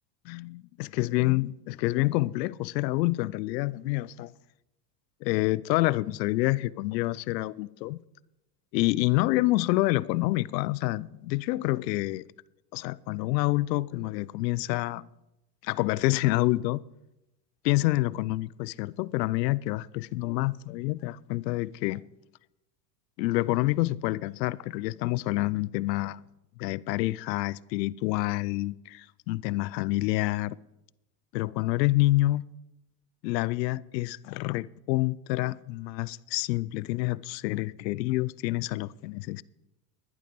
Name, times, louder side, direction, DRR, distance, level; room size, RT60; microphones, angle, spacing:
voice 1, 0.2-4.3 5.2-8.0 8.7-12.3 12.7-15.1 15.6-16.8 17.6-22.0 23.2-26.2 26.6-30.6 31.3-32.4 33.2-39.4, left 19 dB, 90° left, 0.6 m, -27 dB
11.5 x 11.0 x 5.2 m
supercardioid pair, 140°, 49 cm